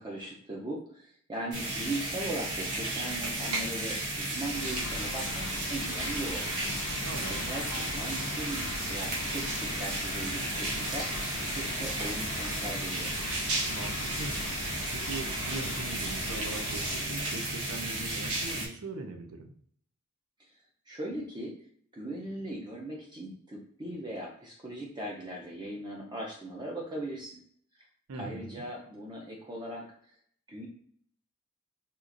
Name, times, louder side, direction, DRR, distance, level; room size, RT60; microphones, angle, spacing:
voice 1, 0.0-13.1 20.4-20.5 20.9-21.5 21.9-27.4 27.7-27.9 28.1-29.9 30.5-30.7, right 1 dB, 20° right, -2 dB, 0.5 m, -39 dB
sound 1, 1.5-18.7, right 2 dB, 85° right, 1.2 m, -34 dB
sound 2, 4.5-17.1, left 3 dB, 55° left, 0.6 m, -40 dB
voice 2, 7.0-7.5 13.7-14.4 14.9-19.5 28.1-28.6, right 3 dB, 65° right, 4 dB, 0.5 m, -41 dB
4.4 x 2.5 x 2.5 m, 0.63 s
head